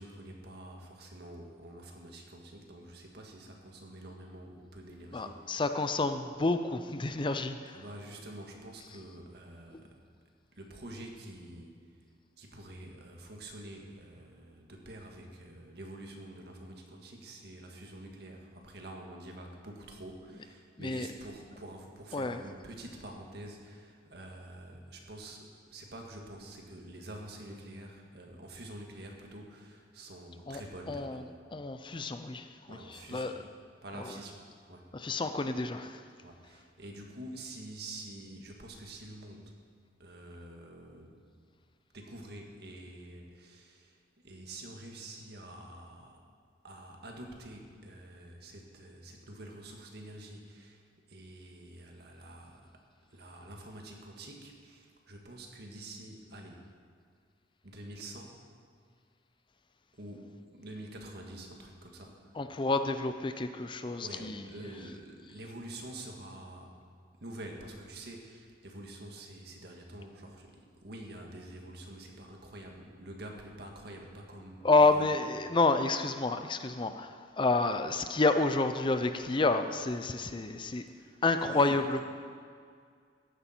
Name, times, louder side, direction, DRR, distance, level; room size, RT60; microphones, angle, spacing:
voice 1, 0.0-5.6 7.7-9.9 10.5-11.8 12.4-31.4 32.7-33.3 33.8-34.4 34.7-34.9 36.2-39.5 40.0-41.1 41.9-44.0 44.2-46.2 46.6-50.8 51.1-52.7 53.1-56.6 57.6-58.4 60.0-62.3 64.0-66.7 67.2-75.1 80.9-81.8, right 1 dB, 60° right, 1 dB, 1.8 m, -47 dB
voice 2, 5.1-7.8 20.8-21.1 22.1-22.4 30.5-30.6 30.9-31.2 31.5-33.3 34.0-34.2 34.9-36.0 62.3-64.4 74.6-80.8 81.2-82.0, left 3 dB, 25° left, 9 dB, 0.5 m, -29 dB
14.5 x 11.0 x 4.5 m, 2.1 s
head